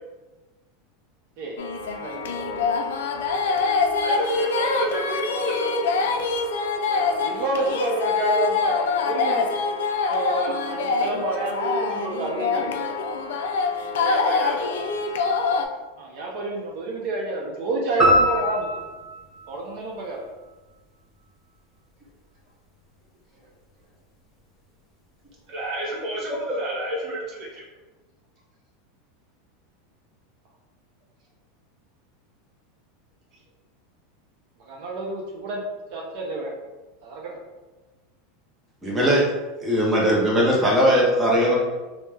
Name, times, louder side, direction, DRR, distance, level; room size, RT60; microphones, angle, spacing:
sound 1, 1.6-15.6, left 4 dB, 85° left, 0.3 m, -25 dB
voice 1, 1.9-2.6 7.0-9.4 10.0-12.9 16.0-18.8 19.5-20.2 34.7-35.6 35.9-36.5 37.0-37.3, right 2 dB, 55° right, -2 dB, 0.5 m, -29 dB
voice 2, 4.0-5.9 14.0-14.7 25.5-27.6, right 1 dB, 35° right, -4 dB, 1.0 m, -29 dB
sound 2, 18.0-20.5, equal, 15° left, 0.9 m, -23 dB
voice 3, 38.8-39.3 39.6-41.6, equal, 10° right, -5 dB, 0.6 m, -19 dB
3.1 x 2.0 x 3.3 m, 1.2 s
supercardioid pair, 140°, 0 cm